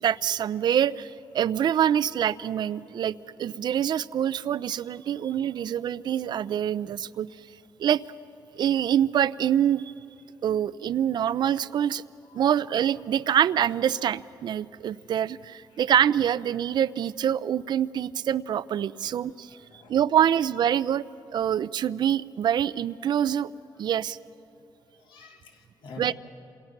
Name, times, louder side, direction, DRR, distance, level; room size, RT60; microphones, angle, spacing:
voice 1, 0.0-3.1 3.4-7.3 7.8-8.0 8.6-9.9 10.4-12.0 12.3-19.6 19.9-21.0 21.3-23.5 23.8-24.2 26.0-26.1, right 9 dB, 65° right, 17 dB, 0.5 m, -25 dB
voice 2, 19.5-20.0 25.0-26.1, left 4 dB, 85° left, 3 dB, 2.2 m, -48 dB
28.0 x 27.5 x 5.9 m, 2.7 s
cardioid pair, 130°, 8 cm